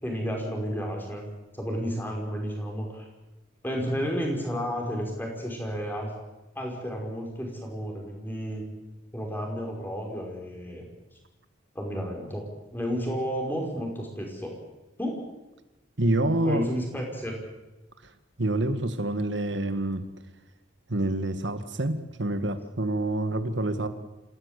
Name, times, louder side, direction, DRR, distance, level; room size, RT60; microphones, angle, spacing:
voice 1, 0.0-1.3 1.6-3.1 3.6-6.1 6.6-8.6 9.1-10.9 11.8-12.5 12.7-14.6 15.0-15.2 16.4-17.4, equal, 10° left, 1 dB, 5.4 m, -32 dB
voice 2, 16.0-16.6 18.4-20.0 20.9-23.9, right 1 dB, 65° right, 10 dB, 1.9 m, -27 dB
27.5 x 16.5 x 8.3 m, 1.0 s
head